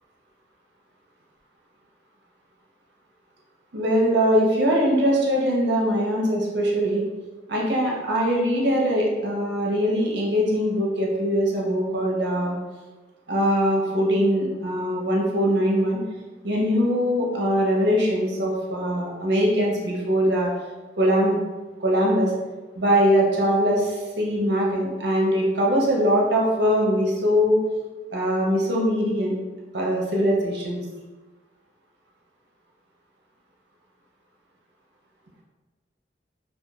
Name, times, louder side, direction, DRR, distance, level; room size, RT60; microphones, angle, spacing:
voice 1, 3.7-7.1 7.5-12.6 13.3-16.0 16.4-20.5 21.0-21.4 21.8-22.3 22.7-27.6 28.1-29.4 29.7-30.8, equal, 65° right, -2 dB, 0.7 m, -22 dB
2.9 x 2.3 x 2.4 m, 1.2 s
head